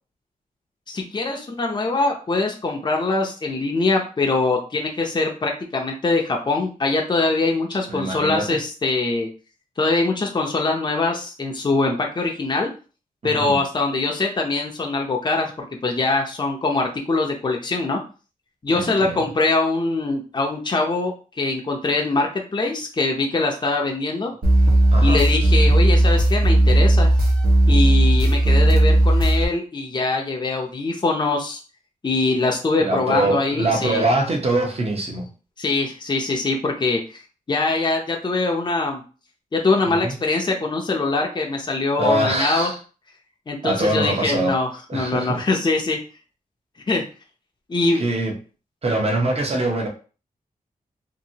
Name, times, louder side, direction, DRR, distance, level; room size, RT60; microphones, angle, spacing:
voice 1, 0.9-9.3 9.8-12.7 13.2-15.5 15.8-18.0 18.6-24.3 25.0-27.1 27.7-31.6 32.0-34.0 35.6-37.2 37.5-39.0 39.5-42.7 43.5-46.0 46.9-47.0 47.7-48.0, left 3 dB, 30° left, 1 dB, 0.6 m, -23 dB
voice 2, 7.9-8.6 13.2-13.6 18.7-19.2 24.9-25.5 32.8-35.3 39.8-40.2 42.0-42.8 43.6-44.6 44.9-45.5 47.9-48.3 48.8-49.9, right 2 dB, 45° right, 1 dB, 0.8 m, -23 dB
sound 1, 24.4-29.5, right 1 dB, 90° right, 1.0 m, -16 dB
2.9 x 2.6 x 2.7 m, 0.36 s
wide cardioid pair, 95°, 15 cm